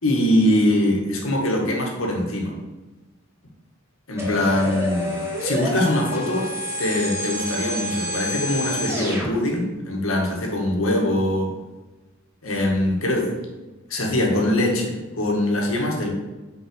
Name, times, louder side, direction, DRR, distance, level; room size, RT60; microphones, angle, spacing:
voice 1, 0.0-2.6 4.1-5.1 5.4-6.5 6.8-11.5 12.4-13.4 13.9-16.1, left 1 dB, 90° left, -1 dB, 2.0 m, -22 dB
Electronic FX, 4.2-9.3, equal, 15° right, 2.3 m, -28 dB
6.0 x 5.2 x 6.3 m, 1.2 s
head